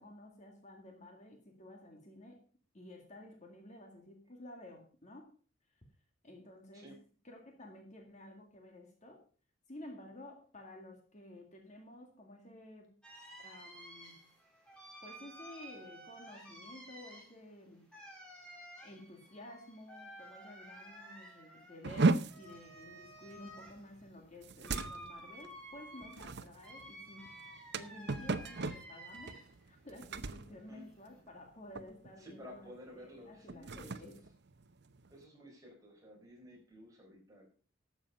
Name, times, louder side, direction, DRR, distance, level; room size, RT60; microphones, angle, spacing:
voice 1, 0.0-2.4 2.7-5.4 6.2-7.0 7.2-9.2 9.7-13.0 13.4-14.3 15.0-18.0 18.8-27.3 27.7-34.2, left 1 dB, 35° left, 3 dB, 2.1 m, -53 dB
sound 1, 13.0-29.7 30.0-31.2, right 1 dB, 5° left, 4.0 m, -53 dB
sound 2, 21.8-31.5 31.7-32.1 32.5-32.8 33.3-35.2, right 3 dB, 55° right, 0.7 m, -37 dB
voice 2, 30.5-30.8 32.2-34.1 35.1-37.5, equal, 15° right, -1 dB, 4.7 m, -54 dB
12.5 x 7.5 x 5.5 m, 0.40 s
head